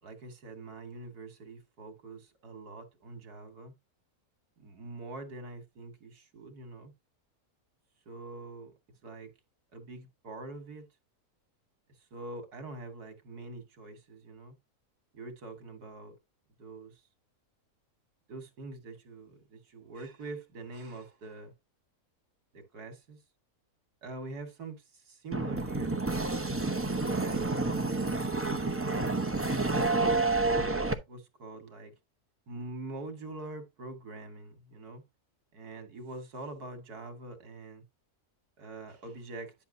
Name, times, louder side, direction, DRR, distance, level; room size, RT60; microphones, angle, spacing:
voice 1, 0.0-3.7 4.6-6.9 8.1-8.7 9.0-9.3 9.7-10.9 12.1-14.6 15.1-16.2 16.6-16.9 18.3-21.5 22.5-23.2 24.0-26.0 27.0-27.4 28.9-29.4 29.8-31.9 32.5-35.0 35.5-37.8 38.6-39.5, right 2 dB, 90° right, 2.4 m, -44 dB
sound 1, 25.3-30.9, right 3 dB, 15° right, 0.6 m, -29 dB
10.5 x 5.9 x 2.7 m
omnidirectional pair, 1.6 m